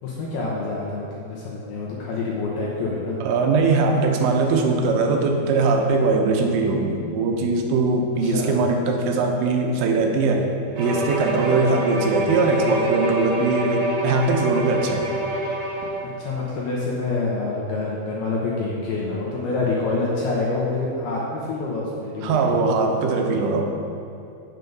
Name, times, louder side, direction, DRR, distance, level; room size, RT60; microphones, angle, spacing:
voice 1, 0.0-3.2 8.2-8.6 16.2-22.4, left 3 dB, 70° left, -5 dB, 2.5 m, -27 dB
voice 2, 3.2-10.5 10.8-15.1 22.2-23.6, right 3 dB, 90° right, 2 dB, 3.5 m, -21 dB
Bowed string instrument, 10.7-16.1, right 1 dB, 60° right, 2.8 m, -27 dB
8.3 x 8.0 x 5.3 m, 2.7 s
omnidirectional pair, 5.7 m